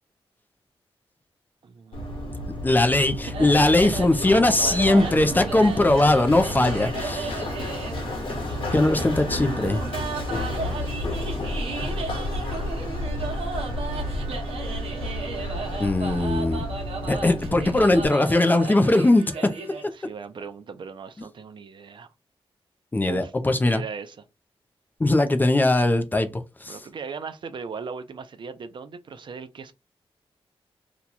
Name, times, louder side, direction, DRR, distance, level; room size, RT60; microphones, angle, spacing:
voice 1, 1.6-2.6 4.3-5.3 7.8-9.0 19.9-22.1 23.1-23.3 23.7-24.2 26.7-29.7, right 5 dB, 55° right, 0.5 m, -38 dB
Run, 1.9-18.1, left 1 dB, 60° left, 1.3 m, -31 dB
voice 2, 2.6-7.4 8.7-9.8 15.8-16.6 17.1-19.4 22.9-23.8 25.0-26.8, left 2 dB, 20° left, 0.5 m, -20 dB
sound 1, 3.3-19.8, right 4 dB, 85° right, 0.9 m, -35 dB
2.9 x 2.2 x 3.9 m
wide cardioid pair, 135°, 10 cm